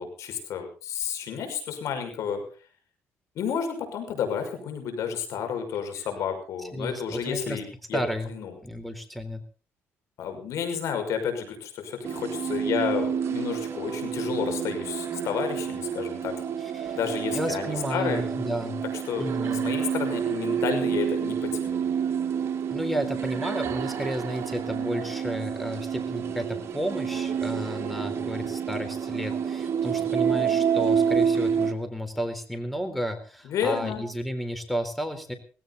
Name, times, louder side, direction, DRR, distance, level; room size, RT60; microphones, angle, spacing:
voice 1, 0.0-2.4 3.3-7.6 7.9-8.0 8.3-8.5 10.2-16.4 16.9-18.2 19.1-19.3 19.6-21.8 27.9-28.5 33.4-34.1, left 7 dB, 75° left, 6 dB, 6.1 m, -31 dB
voice 2, 6.6-7.6 7.9-8.3 8.6-9.4 16.6-17.0 17.3-18.8 19.2-19.7 22.7-35.3, equal, ahead, 8 dB, 4.0 m, -32 dB
sound 1, 12.0-31.7, right 7 dB, 55° right, 2.7 m, -28 dB
18.5 x 16.5 x 4.1 m, 0.39 s
cardioid pair, 90°, 5 cm